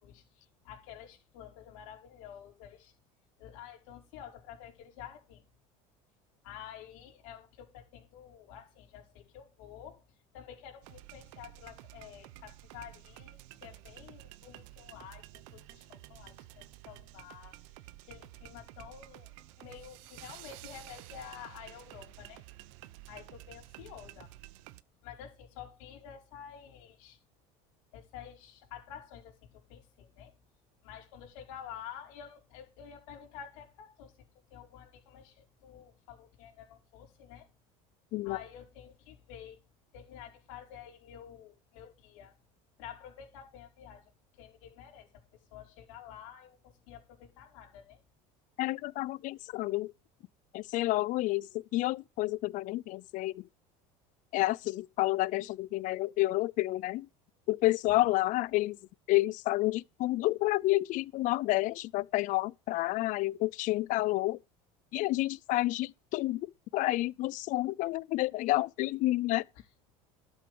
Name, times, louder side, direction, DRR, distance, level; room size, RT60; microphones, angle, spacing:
voice 1, 0.0-2.9 3.4-5.4 6.4-10.0 10.3-22.4 23.1-24.3 25.0-27.2 27.9-30.3 30.8-34.2 34.5-37.5 38.2-39.6 39.9-42.4 42.8-44.1 44.4-45.1 45.5-48.0 69.5-69.6, left 9 dB, 80° left, 4.8 m, -50 dB
sound 1, 10.8-24.8, right 18 dB, 80° right, 0.8 m, -51 dB
voice 2, 48.6-49.9 50.5-53.4 54.3-57.1 57.5-58.8 59.1-64.4 64.9-66.5 66.7-69.4, left 18 dB, 55° left, 0.5 m, -30 dB
12.5 x 7.8 x 5.2 m
supercardioid pair, 125°, 16 cm